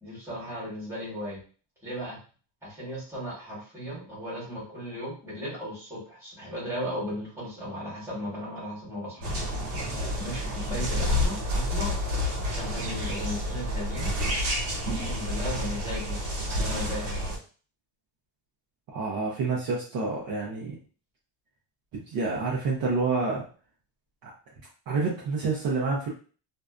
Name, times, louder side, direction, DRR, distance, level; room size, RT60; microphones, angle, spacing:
voice 1, 0.0-1.4 1.8-2.2 2.6-9.2 9.9-11.9 12.4-14.1 14.9-16.3 16.5-17.1, equal, 5° right, -7 dB, 1.2 m, -36 dB
sound 1, 9.2-17.4, left 1 dB, 75° right, 1.2 m, -29 dB
voice 2, 18.9-20.7 21.9-23.4 24.2-24.3 24.9-26.1, right 4 dB, 45° right, -3 dB, 0.6 m, -28 dB
2.6 x 2.2 x 2.4 m, 0.39 s
cardioid pair, 165°, 49 cm